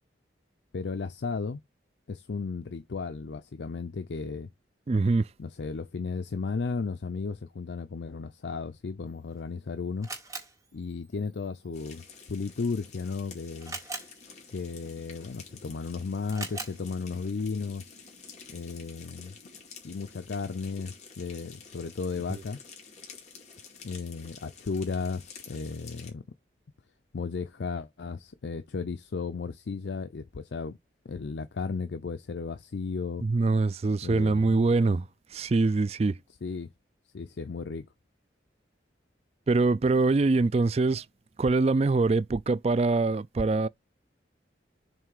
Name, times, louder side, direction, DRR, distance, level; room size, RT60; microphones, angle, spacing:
voice 1, 0.7-1.6 2.1-4.5 5.4-10.1 10.7-13.8 14.5-17.9 18.5-19.3 19.8-22.6 23.8-26.2 27.1-30.8 31.0-33.2 34.0-34.6 36.4-36.7 37.1-37.9, left 4 dB, 70° left, 0.5 m, -34 dB
voice 2, 4.9-5.3 22.3-22.4 33.2-35.1 35.3-36.1 39.5-41.0 41.4-43.7, right 3 dB, 35° right, 0.3 m, -24 dB
Camera, 9.1-18.9, right 3 dB, 15° right, 2.0 m, -46 dB
sound 1, 11.7-26.1, left 5 dB, 40° left, 2.3 m, -50 dB
7.4 x 3.2 x 4.7 m
head